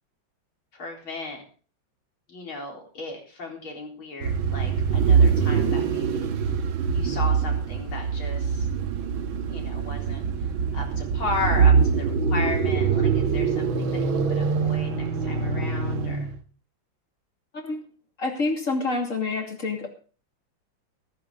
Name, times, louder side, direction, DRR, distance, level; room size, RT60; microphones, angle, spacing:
voice 1, 0.7-1.4 2.3-6.5 6.9-8.7 9.5-10.3 10.7-16.2, left 3 dB, 90° left, 0 dB, 4.8 m, -35 dB
sound 1, 4.2-16.4, right 6 dB, 90° right, 2.0 m, -23 dB
voice 2, 18.2-19.9, left 3 dB, 40° left, 3 dB, 2.9 m, -27 dB
14.5 x 14.5 x 3.8 m, 0.38 s
omnidirectional pair, 2.2 m